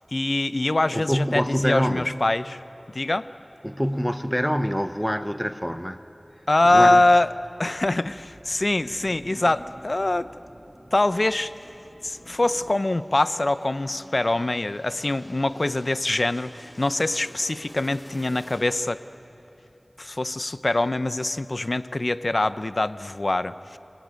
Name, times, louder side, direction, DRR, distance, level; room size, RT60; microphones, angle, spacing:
voice 1, 0.1-2.6 2.9-3.3 6.5-7.3 7.6-10.3 10.9-11.5 12.0-19.0 20.0-23.8, left 2 dB, 65° left, 14 dB, 0.6 m, -23 dB
voice 2, 0.9-2.1 3.6-6.0 6.7-7.0, equal, ahead, 11 dB, 0.8 m, -25 dB
sound 1, 6.7-12.8, equal, 20° right, 1.4 m, -49 dB
sound 2, 12.2-19.0, equal, 45° left, 7.1 m, -49 dB
27.0 x 19.0 x 9.3 m, 2.9 s
wide cardioid pair, 40°, 0 cm